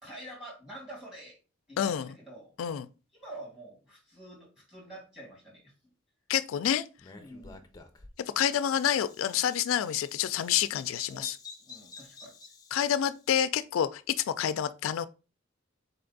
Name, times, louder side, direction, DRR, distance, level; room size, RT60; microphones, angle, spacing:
voice 1, 0.0-1.4 1.7-2.5 3.1-5.7 7.1-7.7 11.1-11.3 11.7-12.3, right 1 dB, 5° right, 1.9 m, -47 dB
voice 2, 1.8-2.2 2.6-2.9 6.3-6.8 8.2-11.4 12.7-15.1, left 9 dB, 85° left, 0.3 m, -28 dB
Bird vocalization bird call bird song, 7.0-13.3, left 3 dB, 20° left, 0.5 m, -49 dB
4.1 x 3.4 x 3.9 m
head